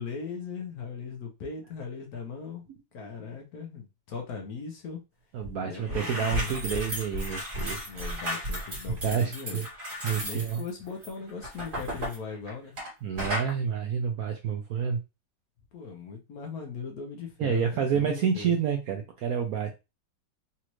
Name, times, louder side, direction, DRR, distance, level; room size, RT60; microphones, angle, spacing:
voice 1, 0.0-2.6 2.9-5.0 5.6-6.5 7.9-9.6 10.2-12.7 15.7-18.6, left 5 dB, 60° left, 2 dB, 1.2 m, -39 dB
voice 2, 5.3-7.8 9.0-9.7 10.0-10.6 13.0-15.0 17.4-19.7, right 7 dB, 70° right, 4 dB, 0.9 m, -29 dB
sound 1, 5.4-5.5 5.8-12.9 13.2-13.5, equal, 30° right, 1.2 m, -34 dB
4.2 x 2.5 x 3.0 m, 0.26 s
omnidirectional pair, 2.0 m